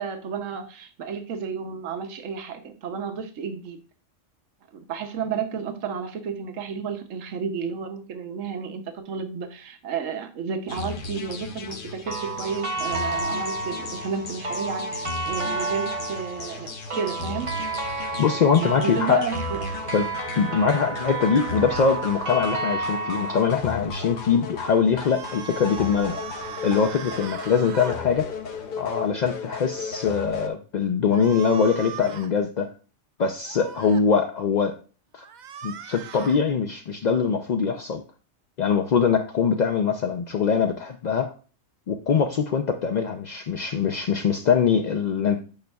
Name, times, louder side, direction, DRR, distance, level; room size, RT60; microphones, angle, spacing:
voice 1, 0.0-3.8 4.9-17.5 18.6-19.7, right 6 dB, 80° right, 7 dB, 1.2 m, -32 dB
sound 1, 10.7-30.5, left 5 dB, 50° left, 0.8 m, -36 dB
sound 2, 12.1-23.4, right 3 dB, 30° right, 0.8 m, -31 dB
voice 2, 18.2-19.3 19.9-20.1 20.4-26.2 26.6-28.3 28.8-32.7 33.2-34.8 35.1-35.3 35.6-38.0 38.6-41.3 41.9-45.4, left 6 dB, 70° left, 4 dB, 0.4 m, -23 dB
sound 3, 24.9-28.0 31.1-32.3 33.4-34.0 35.2-36.4, right 8 dB, 65° right, 0.4 m, -39 dB
8.8 x 5.2 x 2.3 m, 0.37 s
omnidirectional pair, 1.3 m